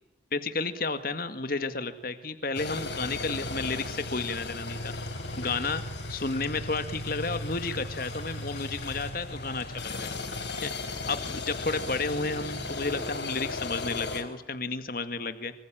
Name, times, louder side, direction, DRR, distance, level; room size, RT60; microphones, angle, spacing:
voice 1, 0.3-4.9 5.4-5.8 6.1-10.1 10.6-10.7 11.1-15.5, left 3 dB, 50° left, 10 dB, 1.9 m, -32 dB
sound 1, 2.5-14.2, left 2 dB, 75° left, 5.0 m, -36 dB
sound 2, 4.7-12.7, left 5 dB, 35° left, 5.0 m, -51 dB
25.5 x 25.0 x 8.8 m, 0.94 s
head